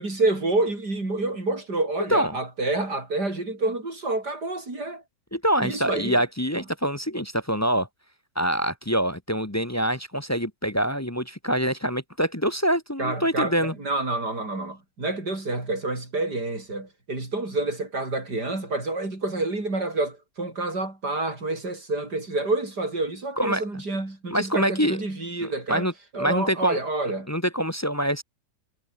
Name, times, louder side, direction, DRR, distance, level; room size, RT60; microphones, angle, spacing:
voice 1, 0.0-5.0 5.6-6.2 13.0-25.9 26.1-27.3, right 2 dB, 80° right, 7.1 m, -28 dB
voice 2, 5.3-7.9 8.3-13.7 23.4-23.6 24.3-25.0 25.4-26.8 27.3-28.2, equal, 10° left, 1.1 m, -25 dB
omnidirectional pair, 1.7 m